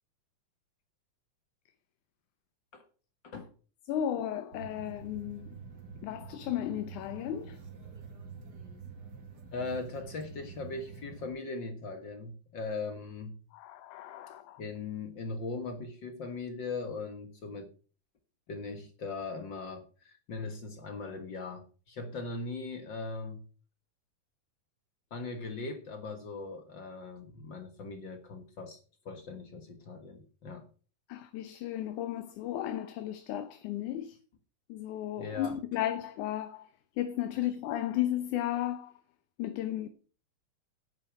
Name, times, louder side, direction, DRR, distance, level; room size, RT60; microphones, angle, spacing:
voice 1, 3.9-5.6 6.0-7.6 13.5-14.6 31.1-34.2 34.7-38.9 39.4-39.9, left 12 dB, 75° left, 2.3 m, -34 dB
sound 1, 4.5-11.3, right 5 dB, 40° right, 2.0 m, -47 dB
voice 2, 9.5-13.4 14.6-17.7 18.5-23.4 25.1-28.8 29.0-30.7 35.2-35.6, left 3 dB, 50° left, 1.5 m, -39 dB
10.5 x 9.0 x 5.8 m
omnidirectional pair, 3.6 m